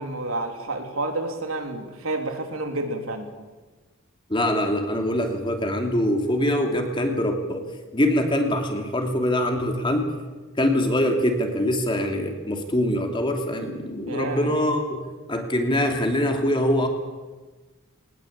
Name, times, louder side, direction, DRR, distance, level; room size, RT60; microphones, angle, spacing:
voice 1, 0.0-3.3 14.1-14.5, right 2 dB, 85° right, 4 dB, 3.4 m, -29 dB
voice 2, 4.3-7.6 7.9-10.1 10.6-16.9, left 1 dB, 25° left, 4 dB, 2.9 m, -23 dB
21.5 x 19.5 x 8.7 m, 1.3 s
head